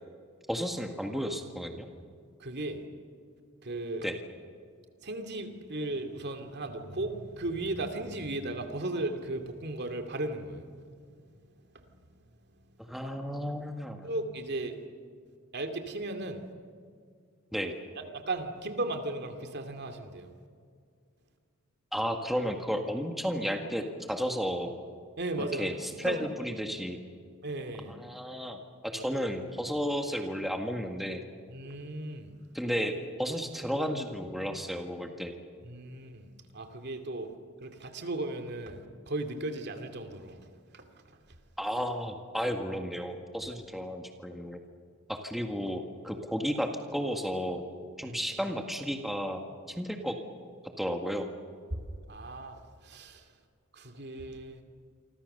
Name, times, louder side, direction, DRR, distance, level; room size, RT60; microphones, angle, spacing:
voice 1, 0.5-1.9 4.0-4.2 12.9-14.1 17.5-17.8 21.9-24.7 25.4-27.0 27.9-31.2 32.5-35.3 41.6-44.6 45.1-47.6 48.0-49.4 49.7-50.2 50.8-51.3, equal, ahead, 4 dB, 1.8 m, -33 dB
voice 2, 2.4-2.8 3.6-4.1 5.0-10.7 11.0-11.2 11.7-12.0 14.0-14.8 15.5-16.4 18.1-20.3 25.2-26.3 27.4-27.9 31.5-32.3 35.6-37.3 37.6-40.5 40.7-41.2 48.0-48.2 51.7-53.3 53.7-54.6, right 2 dB, 55° right, 6 dB, 2.5 m, -36 dB
28.5 x 25.0 x 6.8 m, 2.2 s
head